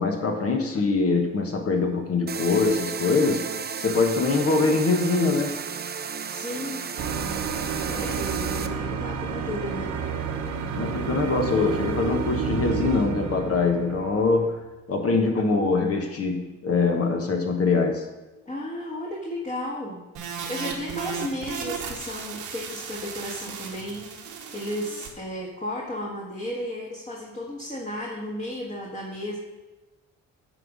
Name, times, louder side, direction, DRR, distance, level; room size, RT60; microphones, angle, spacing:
voice 1, 0.0-5.6 10.8-14.6 14.9-18.0, left 4 dB, 50° left, 3 dB, 1.3 m, -23 dB
sound 1, 2.3-8.7, right 6 dB, 35° right, 0.6 m, -33 dB
voice 2, 6.3-6.9 7.9-10.0 18.4-24.1 24.5-29.4, left 1 dB, 25° left, -3 dB, 1.6 m, -34 dB
sound 2, 7.0-14.6, right 5 dB, 65° right, 1.0 m, -30 dB
sound 3, 20.1-25.1, right 7 dB, 90° right, 1.3 m, -35 dB
8.9 x 4.1 x 6.1 m, 1.1 s
cardioid pair, 90°, 30 cm